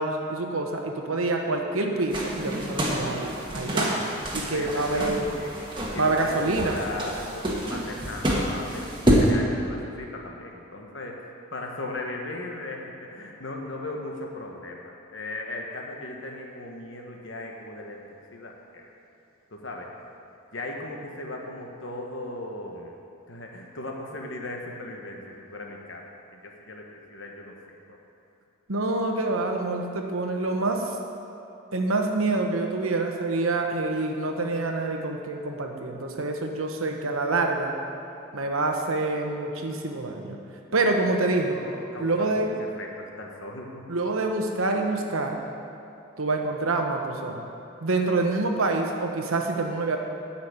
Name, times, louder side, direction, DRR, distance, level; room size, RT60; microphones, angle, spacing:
voice 1, 0.0-4.0 4.3-5.3 5.9-6.8 28.7-30.9 31.7-37.7 38.3-40.4 40.7-41.6 42.0-42.5 43.9-45.4 46.2-47.4 47.8-50.0, right 2 dB, 80° right, 3 dB, 1.1 m, -26 dB
sound 1, 2.1-9.3, equal, 20° right, 1.3 m, -27 dB
voice 2, 4.5-18.0 18.3-18.9 19.5-20.0 20.5-23.0 23.3-26.0 26.3-27.8 40.7-43.9, left 2 dB, 60° left, 1 dB, 1.3 m, -37 dB
10.0 x 5.7 x 8.0 m, 2.8 s
head